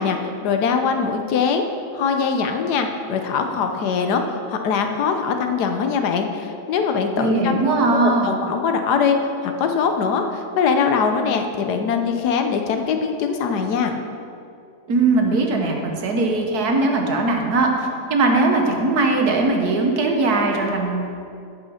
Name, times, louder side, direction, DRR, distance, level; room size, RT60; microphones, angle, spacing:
voice 1, 0.0-1.7 1.9-7.6 7.9-14.0, left 5 dB, 80° left, 5 dB, 1.4 m, -22 dB
voice 2, 7.2-8.3 14.9-21.0, right 3 dB, 70° right, 2 dB, 1.7 m, -20 dB
14.0 x 6.0 x 5.7 m, 2.5 s
omnidirectional pair, 1.7 m